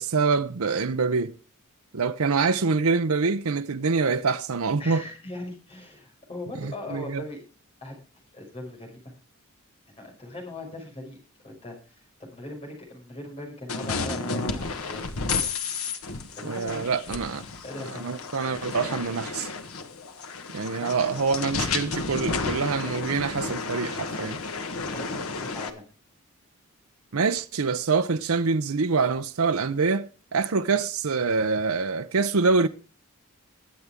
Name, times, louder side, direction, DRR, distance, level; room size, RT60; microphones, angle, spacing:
voice 1, 0.0-1.3 1.9-5.0 6.6-7.2 16.4-17.4 18.0-19.5 20.5-24.4 27.1-32.7, right 4 dB, 80° right, 0.7 m, -25 dB
voice 2, 4.8-7.4 7.8-8.0 8.3-9.0 9.9-11.2 11.4-15.1 16.4-17.2 17.6-18.1 20.8-21.3 24.9-25.8, left 2 dB, 25° left, 5.6 m, -40 dB
sound 1, 13.7-25.7, left 4 dB, 80° left, 1.4 m, -32 dB
21.5 x 8.2 x 3.6 m
head